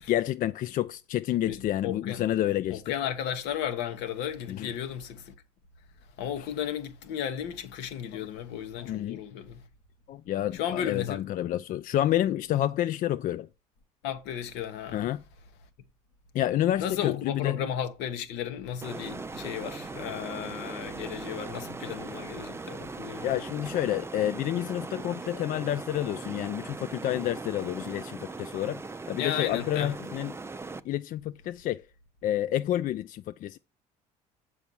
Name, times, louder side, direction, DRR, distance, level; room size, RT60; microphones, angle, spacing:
voice 1, 0.1-2.9 4.5-4.7 6.4-6.5 8.1-8.2 8.8-9.2 10.1-13.5 14.9-15.2 16.3-17.7 23.2-28.8 29.1-30.4 30.8-31.9 32.2-33.6, left 12 dB, 50° left, 0.4 m, -29 dB
voice 2, 1.4-2.3 2.7-5.3 6.2-9.6 10.5-11.3 14.0-15.0 16.8-23.3 29.2-30.1, left 9 dB, 75° left, 1.2 m, -34 dB
sound 1, 18.8-30.8, right 3 dB, 15° right, 0.5 m, -39 dB
7.1 x 4.7 x 6.9 m
hypercardioid pair, 75°, 18 cm